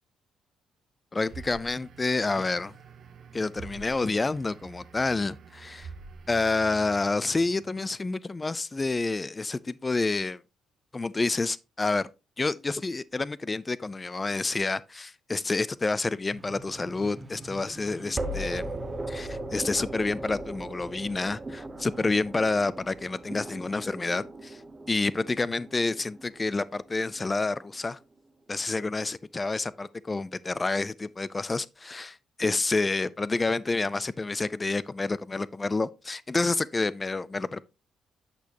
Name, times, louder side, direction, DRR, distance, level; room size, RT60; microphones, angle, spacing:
voice 1, 1.1-2.7 3.3-5.9 6.3-10.4 10.9-12.1 12.4-18.8 19.1-24.6 24.9-28.0 28.5-37.6, left 3 dB, 25° left, 0.5 m, -29 dB
sound 1, 1.2-7.9, right 5 dB, 60° right, 0.8 m, -47 dB
sound 2, 16.3-27.4, right 1 dB, 25° right, 0.9 m, -39 dB
8.4 x 6.3 x 2.9 m
cardioid pair, 90°, 0 cm